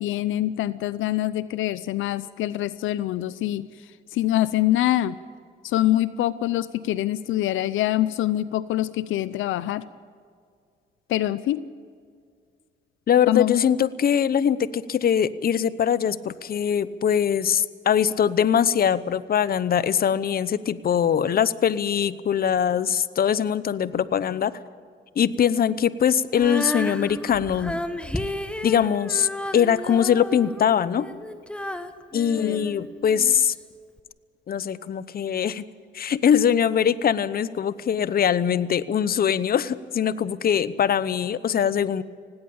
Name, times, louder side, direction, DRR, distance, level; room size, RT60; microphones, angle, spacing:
voice 1, 0.0-5.2 5.6-9.9 11.1-11.6 13.3-13.6 32.4-32.7, left 14 dB, 85° left, 17 dB, 0.6 m, -25 dB
voice 2, 13.1-24.6 25.2-27.8 28.6-31.1 32.1-33.5 34.5-35.6 35.9-42.0, left 8 dB, 50° left, 17 dB, 0.8 m, -22 dB
Female singing, 26.3-33.4 34.0-34.1, left 1 dB, 5° left, 1.3 m, -33 dB
18.0 x 17.5 x 8.8 m, 2.1 s
cardioid pair, 90°, 20 cm